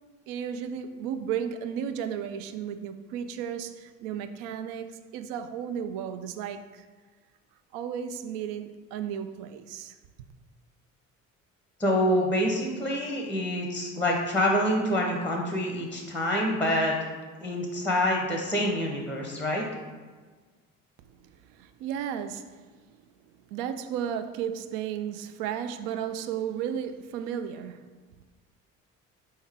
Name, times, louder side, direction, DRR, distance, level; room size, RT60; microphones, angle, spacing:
voice 1, 0.3-6.9 7.7-10.0 21.2-22.6 22.9-23.0 23.5-27.8, right 8 dB, 55° right, 10 dB, 0.5 m, -34 dB
voice 2, 11.8-17.0 17.4-19.6, equal, 5° left, 0 dB, 0.7 m, -26 dB
4.3 x 3.6 x 3.4 m, 1.4 s
figure-of-eight pair, 55°, 40 cm